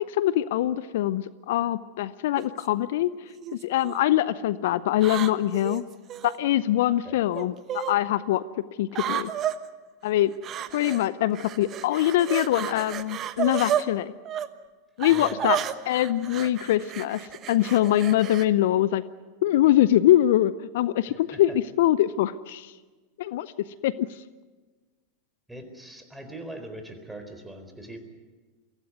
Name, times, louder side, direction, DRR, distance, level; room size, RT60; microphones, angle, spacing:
voice 1, 0.0-3.1 3.6-5.8 6.2-8.4 8.8-9.3 10.0-10.3 10.7-14.1 15.0-15.6 15.9-19.0 19.4-22.7 23.2-23.5 23.8-23.9, left 13 dB, 65° left, 17 dB, 0.6 m, -23 dB
sound 1, 2.4-2.7 3.4-3.9 5.0-6.4 7.4-7.9 8.9-9.6 10.4-11.1 11.3-13.9 14.3-14.5 15.0-18.5, right 10 dB, 35° right, 1.1 m, -32 dB
voice 2, 15.1-15.5 21.1-21.6 25.5-28.0, right 1 dB, 5° right, 6 dB, 4.1 m, -41 dB
23.0 x 16.5 x 9.4 m, 1.3 s
hypercardioid pair, 90°, 0 cm